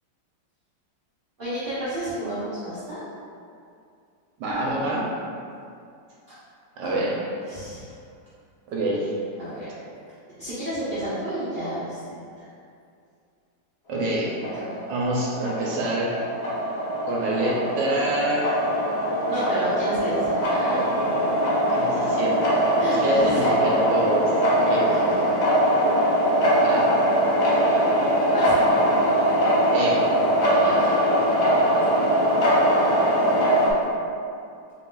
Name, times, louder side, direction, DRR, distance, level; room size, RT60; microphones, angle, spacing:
voice 1, 1.4-3.0 6.8-7.0 7.5-7.9 9.4-9.8 10.4-12.4 14.5-14.8 19.3-21.4 21.9-22.0 22.8-23.5 24.9-25.2 28.3-28.7 30.6-30.9, right 1 dB, 50° right, -12 dB, 0.6 m, -31 dB
voice 2, 4.4-5.1 6.8-7.2 8.7-9.1 13.9-14.4 14.9-16.2 17.0-18.6 21.6-22.6 22.8-24.3 24.6-24.9 26.6-27.0 29.7-30.1, right 1 dB, 75° right, -4 dB, 1.2 m, -26 dB
sound 1, 14.3-33.7, equal, 70° left, 0.6 m, -22 dB
3.9 x 2.4 x 3.7 m, 2.4 s
omnidirectional pair, 2.1 m